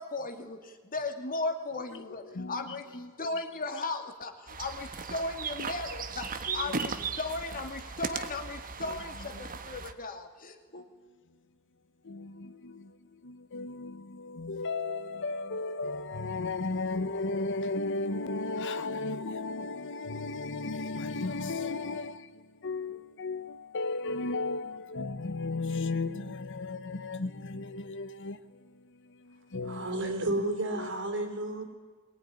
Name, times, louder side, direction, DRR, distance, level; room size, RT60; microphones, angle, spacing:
voice 1, 0.0-10.9, left 2 dB, 40° left, 2.3 m, -36 dB
voice 2, 2.3-2.8 3.2-3.3 6.5-6.8 9.3-9.4 12.0-28.7 29.0-30.3 30.8-30.9, left 3 dB, 55° left, 0.9 m, -35 dB
sound 1, 4.5-9.9, right 5 dB, 40° right, 1.4 m, -37 dB
voice 3, 29.6-31.6, right 1 dB, 55° right, 3.9 m, -32 dB
22.0 x 20.0 x 10.0 m
head